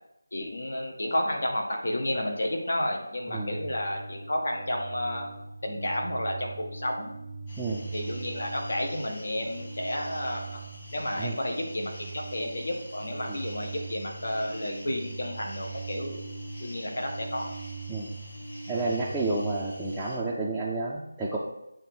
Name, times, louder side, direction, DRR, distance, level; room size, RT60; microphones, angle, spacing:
voice 1, 0.3-5.3 5.6-7.1 7.9-10.6 10.9-16.2 16.6-17.5, left 1 dB, 65° left, 1 dB, 1.5 m, -31 dB
voice 2, 3.3-3.6 7.6-7.8 11.2-11.3 13.3-13.4 17.9-18.1 18.7-21.4, right 2 dB, 5° right, -10 dB, 0.6 m, -30 dB
sound 1, 3.3-20.0, right 4 dB, 40° right, 0.7 m, -41 dB
sound 2, 7.5-20.2, left 1 dB, 35° left, 2.2 m, -48 dB
8.5 x 3.2 x 4.7 m, 0.83 s
figure-of-eight pair, 165°, 0 cm